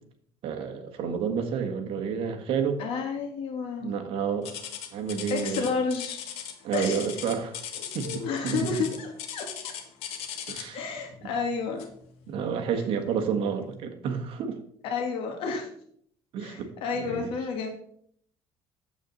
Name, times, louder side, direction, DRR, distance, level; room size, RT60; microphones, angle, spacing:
voice 1, 0.4-2.8 3.8-4.6 4.9-5.7 6.6-7.6 7.9-8.7 10.5-10.8 12.3-14.6 16.3-16.7 17.0-17.3, right 6 dB, 65° right, 5 dB, 1.5 m, -30 dB
voice 2, 2.8-4.0 5.3-6.3 6.7-7.0 7.8-9.7 10.7-11.9 12.7-12.8 14.8-15.7 16.4-17.7, left 5 dB, 65° left, 3 dB, 1.7 m, -31 dB
sound 1, 4.4-10.8 11.8-12.0 12.6-12.7 13.4-13.5, left 9 dB, 85° left, 1.4 m, -38 dB
8.9 x 7.8 x 4.1 m, 0.65 s
cardioid pair, 140°, 10 cm